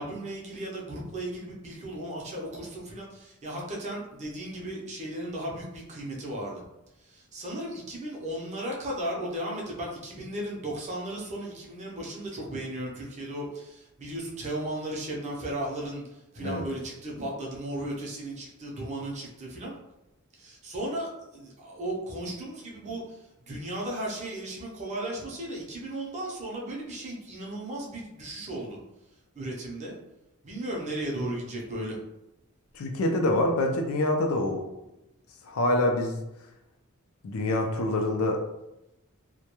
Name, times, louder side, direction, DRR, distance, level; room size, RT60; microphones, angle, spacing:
voice 1, 0.0-6.6 7.0-19.7 20.3-28.8 29.4-30.0 30.4-32.0, right 1 dB, 35° right, -2 dB, 0.6 m, -35 dB
voice 2, 32.7-34.6 35.4-36.2 37.2-38.4, left 1 dB, 70° left, 3 dB, 0.4 m, -26 dB
2.2 x 2.1 x 2.9 m, 0.91 s
head